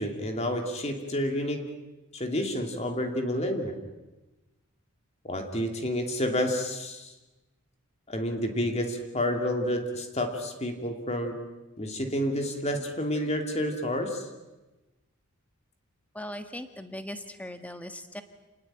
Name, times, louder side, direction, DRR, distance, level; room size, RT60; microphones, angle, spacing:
voice 1, 0.0-1.6 2.1-3.7 5.2-7.1 8.1-11.4 11.8-14.3, equal, 30° left, 4 dB, 2.8 m, -29 dB
voice 2, 16.1-18.2, left 1 dB, 5° left, 7 dB, 1.7 m, -39 dB
28.5 x 19.5 x 9.1 m, 1.1 s
head